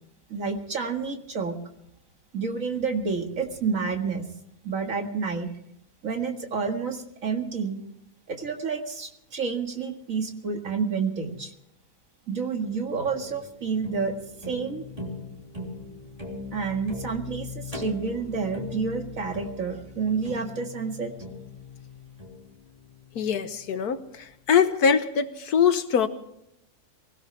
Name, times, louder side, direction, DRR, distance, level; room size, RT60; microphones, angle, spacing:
voice 1, 0.3-1.6 2.3-4.2 4.6-5.5 6.0-7.8 8.3-11.5 12.3-14.2 14.5-14.8 16.5-21.1, right 5 dB, 60° right, 4 dB, 2.2 m, -29 dB
sound 1, 12.6-23.8, left 3 dB, 20° right, 3.3 m, -40 dB
voice 2, 23.2-26.1, left 7 dB, 80° left, 10 dB, 1.6 m, -23 dB
23.5 x 17.0 x 3.3 m, 0.79 s
omnidirectional pair, 1.6 m